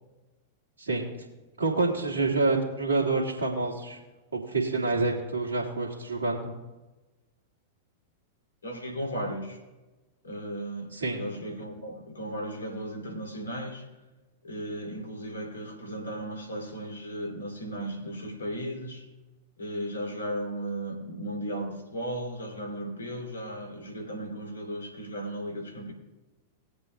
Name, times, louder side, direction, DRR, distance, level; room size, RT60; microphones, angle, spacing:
voice 1, 1.6-4.0 4.3-6.5 10.9-11.2, right 3 dB, 80° right, -4 dB, 1.7 m, -27 dB
voice 2, 8.6-9.6 10.2-13.9 14.4-19.1 19.6-25.9, right 1 dB, 85° left, 1 dB, 2.5 m, -36 dB
20.5 x 7.9 x 2.2 m, 1.1 s
hypercardioid pair, 100°, 0 cm